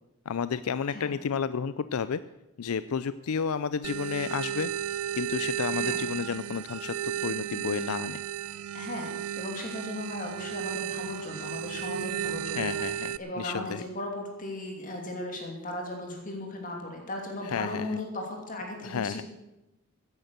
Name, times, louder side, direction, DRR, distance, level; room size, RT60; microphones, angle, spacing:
voice 1, 0.3-2.2 2.6-4.7 5.2-8.2 12.5-13.8 17.4-17.9 18.8-19.2, left 6 dB, 75° left, 15 dB, 0.4 m, -31 dB
sound 1, 3.8-13.2, right 11 dB, 85° right, 0.5 m, -34 dB
voice 2, 8.7-19.2, left 1 dB, 35° left, 1 dB, 2.8 m, -37 dB
16.0 x 10.0 x 6.6 m, 0.96 s
head